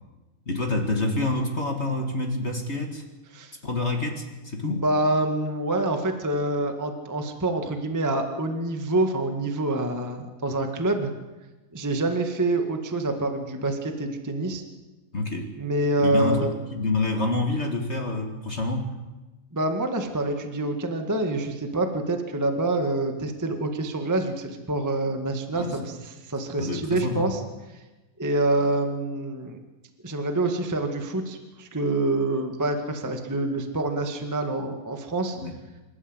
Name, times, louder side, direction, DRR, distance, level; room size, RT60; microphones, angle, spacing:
voice 1, 0.4-3.0 3.6-4.9 15.1-15.5 16.0-18.9 25.5-25.8 26.6-27.3 35.3-35.5, left 2 dB, 30° left, 2 dB, 1.4 m, -27 dB
voice 2, 4.6-11.1 11.7-14.6 15.6-16.5 19.5-27.4 28.2-29.6 30.0-35.4, right 2 dB, 15° right, 4 dB, 0.6 m, -26 dB
27.5 x 13.0 x 8.1 m, 1.1 s
omnidirectional pair, 4.1 m